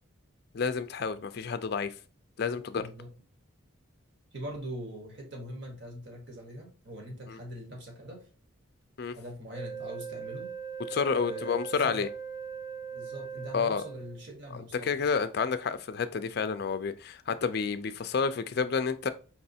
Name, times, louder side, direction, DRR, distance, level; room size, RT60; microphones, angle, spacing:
voice 1, 0.5-1.9 2.4-2.8 7.3-7.4 9.0-9.2 10.9-12.1 13.5-13.8 14.5-19.1, left 5 dB, 50° left, 0.4 m, -30 dB
voice 2, 2.8-3.1 4.3-8.3 9.1-10.5 11.1-12.1 12.9-15.0, equal, 55° right, 1.4 m, -42 dB
Wind instrument woodwind instrument, 9.5-14.3, right 6 dB, 15° right, 0.5 m, -40 dB
4.6 x 3.2 x 2.7 m
head